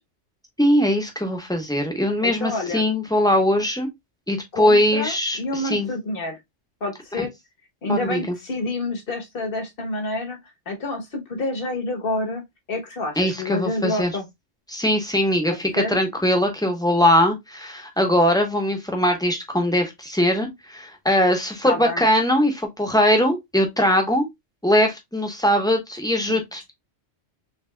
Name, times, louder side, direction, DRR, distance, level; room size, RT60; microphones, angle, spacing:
voice 1, 0.6-3.9 4.3-5.9 7.1-7.2 7.9-8.3 13.2-14.1 14.7-24.3 24.6-26.7, left 1 dB, 5° left, 0.8 m, -21 dB
voice 2, 2.2-2.8 4.5-6.4 6.8-7.3 7.8-10.4 10.7-12.4 12.7-14.3 15.8-16.0 21.6-22.0 26.3-26.4, left 2 dB, 50° left, 1.3 m, -28 dB
4.0 x 3.5 x 2.2 m
omnidirectional pair, 1.3 m